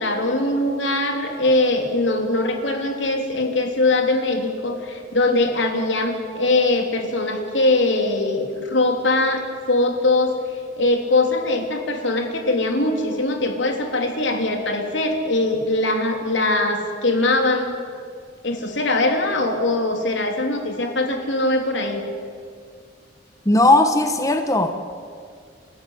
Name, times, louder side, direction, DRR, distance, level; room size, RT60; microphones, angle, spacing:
voice 1, 0.0-10.4 10.8-17.8 18.4-22.0, left 2 dB, 75° left, 4 dB, 3.2 m, -21 dB
voice 2, 23.4-24.8, left 2 dB, 15° left, 6 dB, 1.1 m, -17 dB
28.0 x 14.0 x 9.9 m, 2.1 s
head